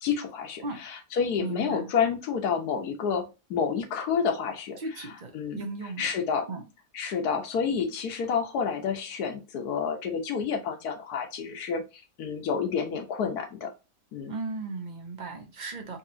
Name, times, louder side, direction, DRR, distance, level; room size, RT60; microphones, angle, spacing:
voice 1, 0.0-5.1 5.3-5.7 6.0-6.5 6.9-13.7 14.1-14.3, left 6 dB, 75° left, 4 dB, 1.4 m, -29 dB
voice 2, 1.4-1.9 4.8-6.1 6.5-6.6 14.3-16.0, right 3 dB, 45° right, 3 dB, 0.6 m, -36 dB
3.9 x 2.9 x 2.5 m, 0.27 s
omnidirectional pair, 1.7 m